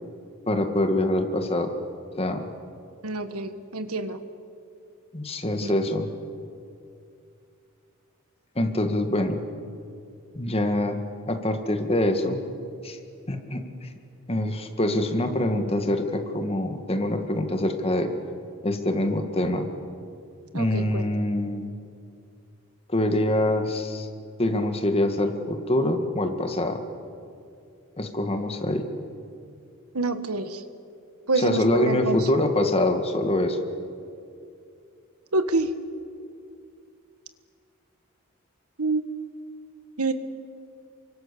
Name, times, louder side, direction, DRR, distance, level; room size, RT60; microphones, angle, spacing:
voice 1, 0.5-1.7 2.2-2.5 5.1-6.1 8.6-9.4 10.4-11.0 11.3-12.4 12.8-13.0 13.3-13.9 14.3-18.1 18.6-19.7 20.5-21.7 22.9-24.1 24.4-26.8 28.0-28.9 31.4-33.7, left 1 dB, 25° left, 6 dB, 2.0 m, -25 dB
voice 2, 3.0-4.2 5.6-5.7 20.5-21.1 29.9-30.6 31.3-32.3 35.3-35.7 38.8-39.0 40.0-40.1, right 3 dB, 90° right, 10 dB, 1.6 m, -26 dB
29.0 x 24.5 x 7.0 m, 2.5 s
head